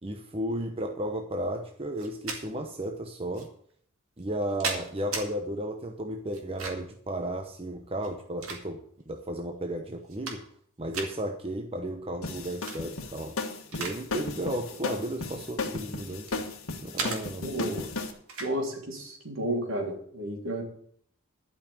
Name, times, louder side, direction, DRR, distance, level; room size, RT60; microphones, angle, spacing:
voice 1, 0.0-3.5 4.2-10.4 10.8-13.4 13.7-16.4 16.8-17.9, right 1 dB, 25° right, 4 dB, 0.9 m, -34 dB
sound 1, 2.0-2.4 3.3-3.5 4.2-5.3 6.3-7.0 7.9-9.0 9.6-9.7 10.0-10.6 10.9-11.1 12.5-12.8 13.2-14.0 14.3-14.5 15.3-16.4 17.0-17.2 18.3-18.5, right 4 dB, 85° right, 2.2 m, -36 dB
sound 2, 12.2-18.1, left 3 dB, 80° left, 1.6 m, -35 dB
voice 2, 17.4-17.7 18.4-20.6, right 1 dB, 70° right, 1 dB, 3.2 m, -32 dB
12.0 x 5.7 x 8.6 m, 0.62 s
head